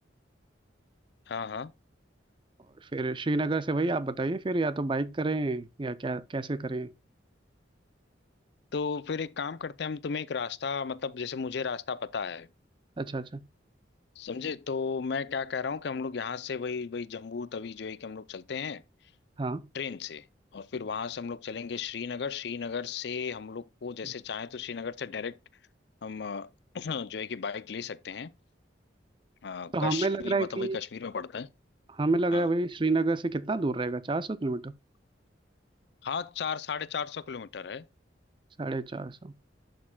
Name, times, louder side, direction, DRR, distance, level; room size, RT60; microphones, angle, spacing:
voice 1, 1.3-1.7 8.7-12.5 14.2-18.8 19.7-20.3 20.5-25.4 26.0-26.5 26.7-28.3 29.4-31.5 32.3-32.5 36.0-37.9, left 5 dB, 60° left, 0.5 m, -35 dB
voice 2, 2.9-6.9 13.0-13.4 19.4-19.7 29.7-30.8 31.9-34.7 38.6-39.3, right 2 dB, 25° right, 0.5 m, -29 dB
11.0 x 6.5 x 2.3 m
head